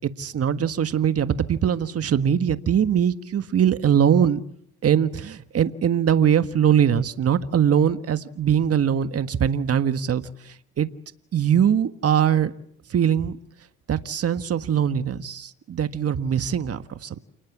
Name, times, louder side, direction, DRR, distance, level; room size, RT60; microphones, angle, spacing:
voice 1, 0.0-4.4 4.8-10.2 10.8-10.9 11.3-12.5 12.9-13.3 13.9-17.2, right 8 dB, 50° right, 1.6 m, -21 dB
29.0 x 19.5 x 7.4 m
cardioid pair, 90°, 30 cm